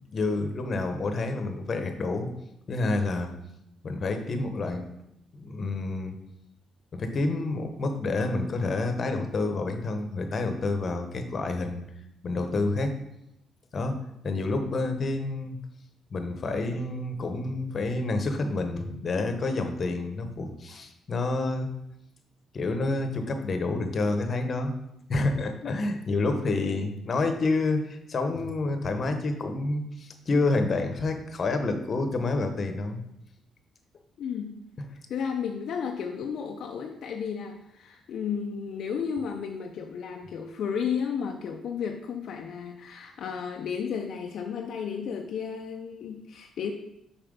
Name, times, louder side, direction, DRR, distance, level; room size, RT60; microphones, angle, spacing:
voice 1, 0.1-2.3 2.7-3.3 3.8-4.8 5.3-6.1 6.9-11.8 12.2-13.0 13.7-15.6 16.1-21.8 22.5-24.7 25.1-33.0, left 2 dB, 45° left, 6 dB, 1.0 m, -28 dB
voice 2, 34.2-34.7 35.1-46.7, left 7 dB, 70° left, 2 dB, 0.5 m, -33 dB
5.8 x 4.4 x 5.2 m, 0.80 s
cardioid pair, 90°, 0 cm